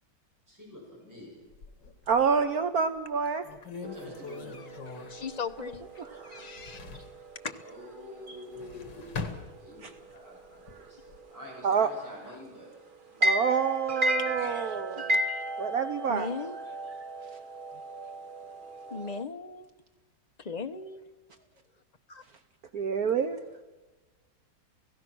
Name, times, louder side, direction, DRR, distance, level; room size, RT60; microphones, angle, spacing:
voice 1, 0.5-1.5 3.8-4.8 7.6-12.8 13.1-13.3 23.0-23.2, left 1 dB, 10° right, -4 dB, 7.1 m, -48 dB
sound 1, 1.5-2.5 3.0-3.1 3.4-6.1 6.4-7.2 8.3-10.1 10.5-11.2, left 4 dB, 80° left, 2.7 m, -42 dB
voice 2, 2.1-3.4 6.1-6.5 11.6-11.9 13.2-15.2 15.6-16.3 22.7-23.4, right 6 dB, 60° right, 9 dB, 1.3 m, -27 dB
sound 2, 3.8-19.2, right 1 dB, 30° right, 1.3 m, -36 dB
voice 3, 4.9-6.8 7.4-7.6 14.2-15.1 16.1-16.5 18.9-19.7 20.4-21.0 22.1-22.2, left 5 dB, 35° left, 7 dB, 0.6 m, -38 dB
29.0 x 16.5 x 6.2 m, 1.2 s
omnidirectional pair, 1.9 m